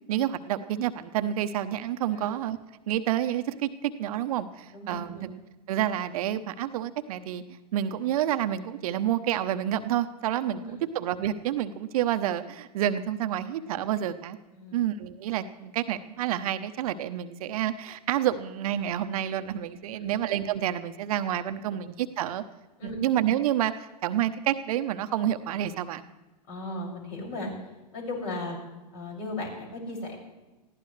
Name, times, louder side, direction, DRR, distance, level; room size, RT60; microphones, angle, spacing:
voice 1, 0.1-2.6 2.9-5.4 5.7-7.4 7.7-14.4 14.7-22.4 22.8-23.7 24.0-26.1, right 11 dB, 60° right, 10 dB, 0.9 m, -29 dB
voice 2, 4.7-5.3 10.5-10.7 14.5-14.8 20.0-20.1 22.8-23.0 26.5-27.5 27.9-28.6 28.9-30.2, left 2 dB, 55° left, -1 dB, 6.5 m, -36 dB
20.5 x 15.5 x 3.3 m, 1.1 s
hypercardioid pair, 105°, 21 cm